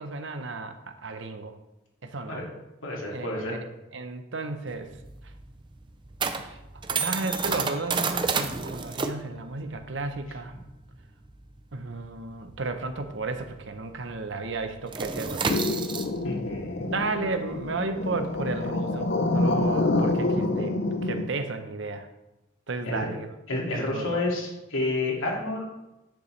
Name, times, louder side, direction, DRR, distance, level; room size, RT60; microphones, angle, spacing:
voice 1, 0.0-1.5 2.0-2.4 3.1-3.6 3.9-4.9 6.4-6.6 6.9-10.5 11.7-15.5 16.9-20.7 21.0-22.1 22.7-23.3 23.7-24.2, right 3 dB, 60° right, 8 dB, 0.8 m, -33 dB
voice 2, 2.8-3.6 16.2-16.9 22.8-23.1 23.5-25.6, left 2 dB, 80° left, -2 dB, 2.4 m, -30 dB
sound 1, 4.7-13.6 13.9-14.2 14.5-20.2, right 5 dB, 25° right, 0.4 m, -32 dB
sound 2, 15.5-21.3, left 2 dB, 55° left, 0.6 m, -27 dB
9.8 x 6.9 x 3.3 m, 0.96 s
head